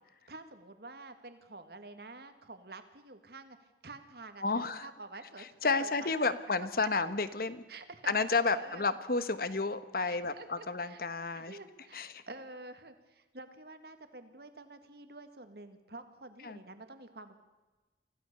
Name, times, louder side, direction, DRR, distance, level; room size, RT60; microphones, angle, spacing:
voice 1, 0.3-6.4 7.7-8.1 8.5-8.8 10.0-11.0 11.4-17.4, right 2 dB, 60° right, 9 dB, 1.9 m, -49 dB
voice 2, 4.4-4.9 5.4-7.6 8.0-11.6 11.9-12.2 16.4-16.6, left 4 dB, 55° left, 13 dB, 1.2 m, -31 dB
24.5 x 16.0 x 6.8 m, 1.2 s
head